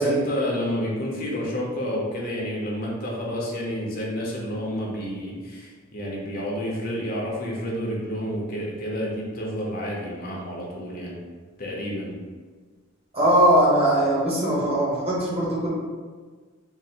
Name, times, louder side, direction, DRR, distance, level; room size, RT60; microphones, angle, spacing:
voice 1, 0.0-11.2 11.6-12.1, equal, 45° left, -3 dB, 0.7 m, -30 dB
voice 2, 13.1-15.7, right 1 dB, 30° right, -6 dB, 1.0 m, -20 dB
3.8 x 2.0 x 4.2 m, 1.5 s
head